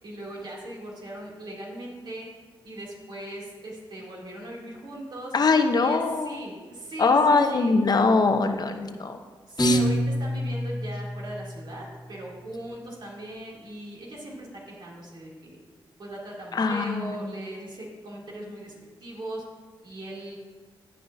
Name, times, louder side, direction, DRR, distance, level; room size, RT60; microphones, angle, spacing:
voice 1, 0.0-2.3 2.6-5.3 5.8-7.7 9.5-15.6 16.0-18.7 19.0-19.4 19.8-20.4, right 1 dB, 55° right, -4 dB, 2.9 m, -39 dB
voice 2, 5.3-6.4 7.0-9.2 9.6-9.8 16.5-17.3, left 4 dB, 50° left, 6 dB, 0.9 m, -22 dB
Piano, 9.6-11.8, right 1 dB, 15° left, 1.8 m, -26 dB
16.5 x 5.5 x 2.8 m, 1.4 s
cardioid pair, 55°, 9 cm